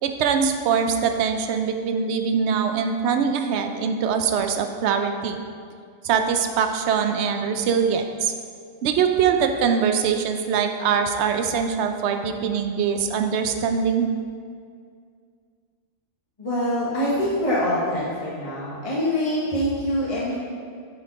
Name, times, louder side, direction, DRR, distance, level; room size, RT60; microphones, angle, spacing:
voice 1, 0.0-5.4 6.0-8.3 8.8-14.1, right 6 dB, 65° right, 5 dB, 0.8 m, -23 dB
voice 2, 16.4-20.4, equal, 30° left, -7 dB, 1.1 m, -24 dB
8.3 x 4.4 x 3.8 m, 2.1 s
omnidirectional pair, 1.4 m